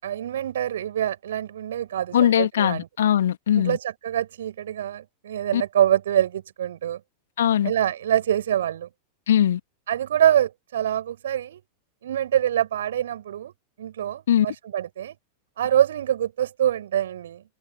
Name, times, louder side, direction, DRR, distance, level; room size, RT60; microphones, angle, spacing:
voice 1, 0.0-2.9 3.5-7.0 7.6-8.9 9.9-11.6 12.0-13.5 13.8-15.2 15.6-17.4, right 10 dB, 60° right, 7.5 m, -25 dB
voice 2, 2.1-3.8 5.5-5.6 7.4-7.7 9.3-9.6 14.3-14.5, left 10 dB, 60° left, 3.0 m, -20 dB
figure-of-eight pair, 90°, 0 cm